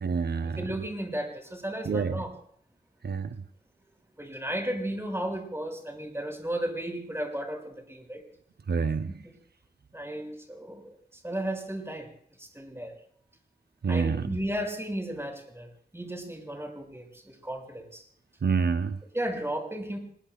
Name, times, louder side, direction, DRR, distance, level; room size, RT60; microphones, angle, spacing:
voice 1, 0.0-0.6 1.9-2.2 3.0-3.3 8.7-9.1 13.8-14.2 18.4-19.0, right 5 dB, 75° right, 10 dB, 0.6 m, -27 dB
voice 2, 0.6-2.3 4.2-8.2 9.2-9.3 9.9-12.1 12.4-12.9 13.9-15.7 15.9-18.0 19.1-20.0, right 1 dB, 15° right, 2 dB, 5.7 m, -34 dB
27.0 x 21.0 x 2.3 m, 0.64 s
wide cardioid pair, 50°, 17 cm